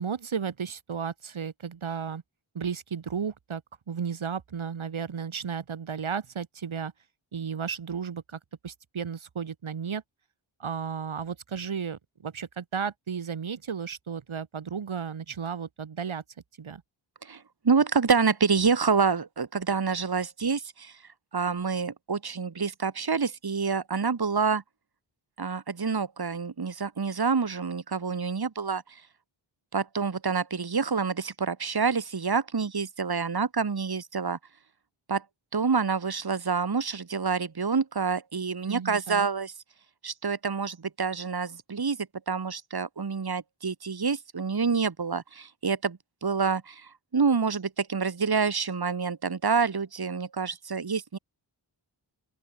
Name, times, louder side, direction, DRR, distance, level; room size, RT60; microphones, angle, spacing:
voice 1, 0.0-2.2 2.5-3.6 3.9-6.9 7.3-10.0 10.6-16.2 16.6-16.8 38.7-39.3, right 6 dB, 70° right, 2.8 m, -34 dB
voice 2, 17.2-21.0 21.3-24.6 25.4-29.0 29.7-34.4 35.1-35.2 35.5-39.5 40.0-42.0 42.3-51.2, right 5 dB, 50° right, 2.5 m, -27 dB
open air
cardioid pair, 45°, 50 cm